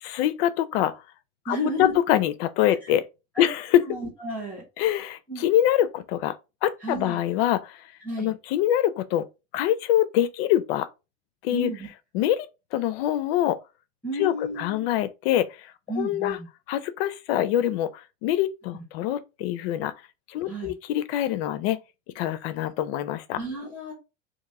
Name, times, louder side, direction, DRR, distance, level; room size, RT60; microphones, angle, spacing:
voice 1, 0.0-0.9 1.5-3.0 3.4-3.8 4.8-6.3 6.6-7.8 8.2-9.2 9.5-10.9 11.4-11.7 12.1-12.5 12.7-13.6 14.2-15.7 16.0-16.4 16.7-19.9 20.3-21.8 22.2-23.4, left 12 dB, 80° left, 0.5 m, -24 dB
voice 2, 1.5-1.9 2.8-2.9 3.3-3.5 3.9-4.6 5.3-5.4 6.8-7.2 8.0-8.3 11.5-11.9 14.0-14.9 15.9-16.5 18.7-18.8 20.4-20.7 23.3-23.9, equal, 5° left, 1.2 m, -32 dB
3.0 x 2.6 x 3.6 m
cardioid pair, 150°, 30 cm